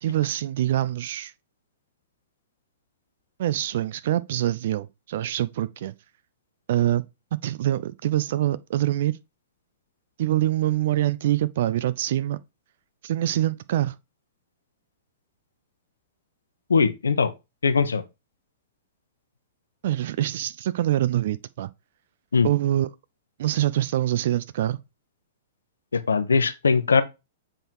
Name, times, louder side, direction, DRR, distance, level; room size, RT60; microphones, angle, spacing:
voice 1, 0.0-1.3 3.4-5.9 6.7-7.0 7.4-9.2 10.2-12.4 13.0-13.9 19.8-21.7 22.4-22.9 23.4-24.8, right 13 dB, 55° right, 0.5 m, -25 dB
voice 2, 16.7-17.3 17.6-18.0 22.3-22.5 25.9-27.0, left 5 dB, 75° left, 0.9 m, -20 dB
7.7 x 3.9 x 4.6 m
figure-of-eight pair, 105°, 0 cm